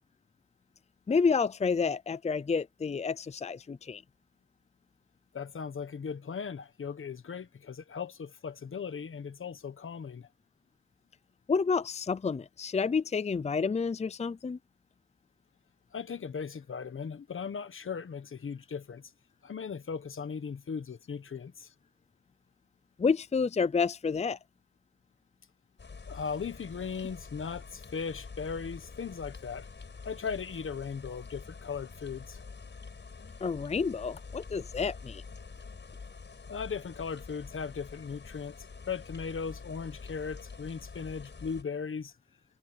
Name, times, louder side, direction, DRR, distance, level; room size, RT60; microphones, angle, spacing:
voice 1, 1.1-4.0 11.5-14.6 23.0-24.4 33.4-35.2, left 5 dB, 35° left, 0.5 m, -29 dB
voice 2, 5.3-10.3 15.9-19.1 19.4-21.7 26.1-29.7 30.0-32.4 36.5-42.1, left 6 dB, 85° left, 1.3 m, -38 dB
sound 1, 25.8-41.6, left 4 dB, 65° left, 5.2 m, -47 dB
wide cardioid pair, 110°, 20 cm